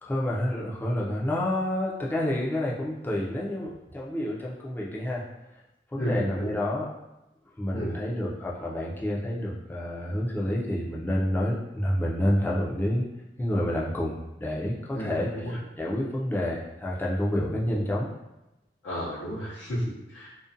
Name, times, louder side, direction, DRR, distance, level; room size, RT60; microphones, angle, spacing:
voice 1, 0.0-5.2 5.9-6.9 7.6-13.1 13.4-18.1, left 1 dB, 10° left, -4 dB, 0.4 m, -29 dB
voice 2, 6.0-6.5 7.7-8.0 14.9-15.6 17.6-17.8 18.8-20.4, equal, 80° left, -10 dB, 0.6 m, -32 dB
2.5 x 2.1 x 2.5 m, 0.95 s
head